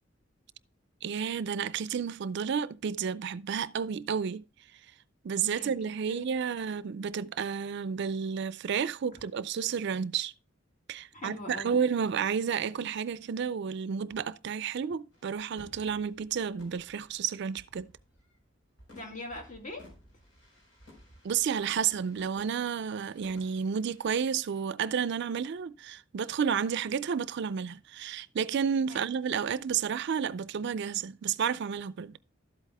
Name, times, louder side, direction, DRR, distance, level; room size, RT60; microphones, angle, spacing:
voice 1, 1.0-4.4 5.2-10.3 10.9-17.9 21.2-32.2, right 7 dB, 60° right, 0.4 m, -31 dB
voice 2, 5.4-6.3 11.1-11.8 18.9-19.9 28.9-29.1, left 1 dB, 40° left, 1.9 m, -42 dB
sound 1, 15.1-18.4 18.8-24.6, left 1 dB, 85° left, 4.2 m, -56 dB
12.0 x 8.2 x 2.2 m
head